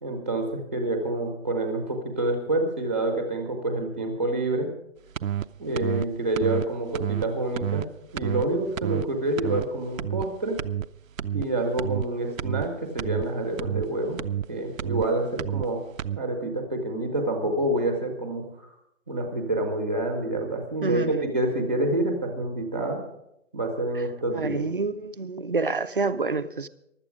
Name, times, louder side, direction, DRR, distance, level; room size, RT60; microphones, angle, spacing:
voice 1, 0.0-4.7 5.6-7.9 8.1-10.6 11.3-14.2 14.5-15.8 16.1-18.7 19.1-23.0 23.5-24.6, right 1 dB, 10° right, 0.9 m, -27 dB
sound 1, 5.1-5.4 5.7-6.0 6.3-6.6 6.9-7.2 7.5-7.8 8.2-8.4 8.8-9.0 9.4-9.6 10.0-10.2 10.6-10.8 11.2-11.4 11.8-12.0 12.4-12.7 13.0-13.2 13.6-13.8 14.2-14.4 14.8-15.1 15.4-15.6 16.0-16.2, right 10 dB, 85° right, 0.6 m, -29 dB
voice 2, 20.8-21.2 24.3-26.7, right 4 dB, 45° right, 0.6 m, -27 dB
16.0 x 12.0 x 5.0 m
hypercardioid pair, 180°, 39 cm